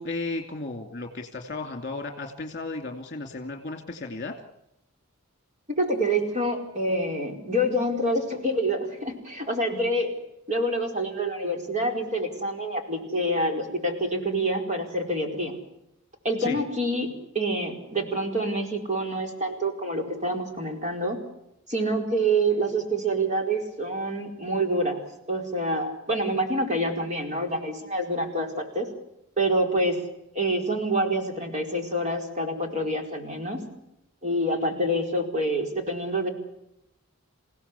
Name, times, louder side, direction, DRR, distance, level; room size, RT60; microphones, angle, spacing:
voice 1, 0.0-4.3 16.4-16.6, left 3 dB, 40° left, 4 dB, 2.6 m, -34 dB
voice 2, 5.7-10.1 10.5-15.5 16.2-17.1 17.3-21.2 21.7-28.9 29.4-30.0 30.3-33.6 34.2-36.3, right 1 dB, 35° right, 3 dB, 4.6 m, -27 dB
28.0 x 16.5 x 8.4 m, 0.83 s
head